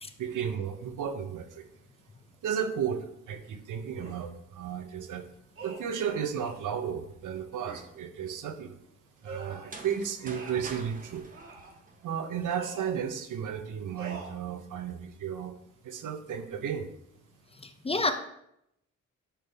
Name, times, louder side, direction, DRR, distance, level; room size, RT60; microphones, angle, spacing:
voice 1, 0.2-1.6 2.4-5.3 5.6-8.7 9.2-11.3 12.0-15.6 15.8-16.9, right 8 dB, 80° right, 8 dB, 0.8 m, -34 dB
sound 1, 4.0-4.3 5.5-6.7 7.6-7.9 9.2-9.8 10.2-10.7 11.3-11.8 12.4-13.0 14.0-14.3, right 4 dB, 45° right, 1.4 m, -44 dB
sound 2, 9.5-12.4, right 3 dB, 25° right, 0.8 m, -46 dB
voice 2, 17.6-18.1, left 2 dB, 20° left, 8 dB, 0.4 m, -29 dB
9.9 x 3.5 x 3.4 m, 0.77 s
wide cardioid pair, 120°, 30 cm